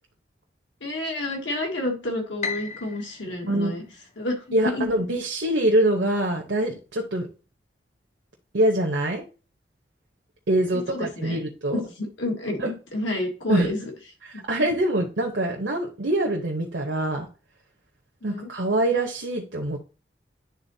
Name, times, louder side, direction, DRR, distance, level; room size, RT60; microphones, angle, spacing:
voice 1, 0.8-3.8 4.2-4.9 10.7-11.4 11.7-13.9 14.6-14.7 18.2-18.5, left 1 dB, 85° left, 2 dB, 1.7 m, -30 dB
Piano, 2.4-4.7, left 5 dB, 35° left, 0.4 m, -36 dB
voice 2, 3.5-3.8 4.5-7.3 8.5-9.2 10.5-11.8 12.6-12.7 13.5-13.7 14.2-17.3 18.2-19.8, right 1 dB, 75° right, 0 dB, 0.9 m, -24 dB
10.5 x 3.9 x 2.7 m, 0.34 s
head